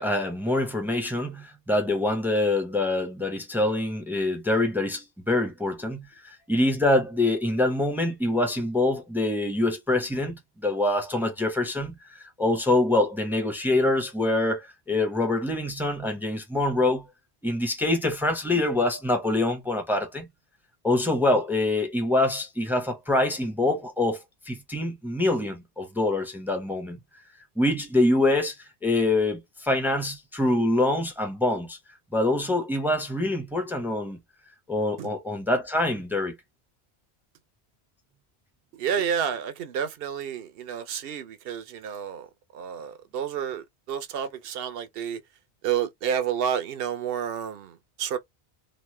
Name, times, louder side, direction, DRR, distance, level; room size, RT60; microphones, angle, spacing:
voice 1, 0.0-17.1 17.4-20.3 20.8-24.2 24.5-27.0 27.6-28.6 28.8-31.8 32.1-34.2 34.7-36.3, left 2 dB, ahead, 0.6 m, -25 dB
voice 2, 38.7-42.3 42.5-45.2 45.6-48.2, right 8 dB, 65° right, 0.7 m, -30 dB
3.0 x 2.1 x 3.2 m
omnidirectional pair, 1.1 m